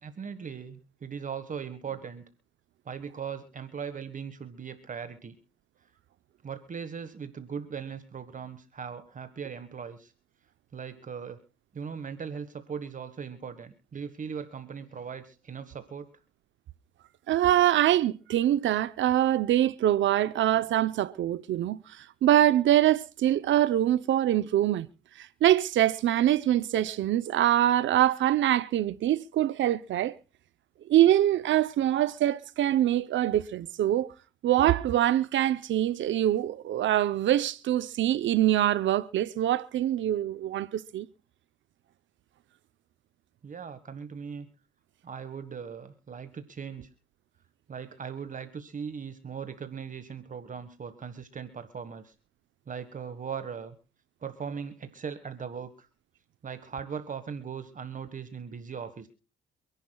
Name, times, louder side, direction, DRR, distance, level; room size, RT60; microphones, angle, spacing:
voice 1, 0.0-2.2 2.8-5.4 6.4-10.1 10.7-11.4 11.7-16.1 43.4-44.5 45.0-46.9 47.7-52.1 52.7-53.7 54.2-55.9 56.4-59.1, right 6 dB, 40° right, 1.5 m, -39 dB
voice 2, 17.3-24.9 25.2-30.1 30.9-34.1 34.4-41.1, right 12 dB, 70° right, 0.7 m, -24 dB
27.5 x 11.0 x 2.3 m
cardioid pair, 90°, 20 cm